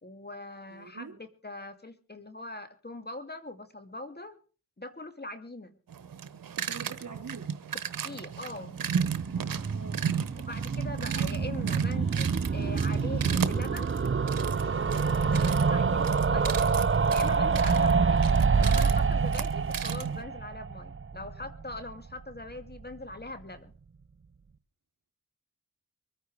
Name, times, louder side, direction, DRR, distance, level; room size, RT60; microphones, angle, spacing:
voice 1, 0.0-4.4 4.8-5.8 7.9-8.8 10.4-13.9 15.3-16.6 17.1-18.3 18.6-23.7, left 2 dB, 30° left, 9 dB, 2.4 m, -41 dB
voice 2, 0.7-1.1 6.7-7.5 9.7-10.0, right 5 dB, 65° right, 6 dB, 3.6 m, -43 dB
sound 1, 5.9-20.2, right 7 dB, 90° right, 1.1 m, -34 dB
sound 2, 8.8-21.9 22.2-22.3 22.5-22.6 22.8-22.9, right 5 dB, 40° right, 0.9 m, -27 dB
23.5 x 9.3 x 4.8 m, 0.37 s
cardioid pair, 45°, 33 cm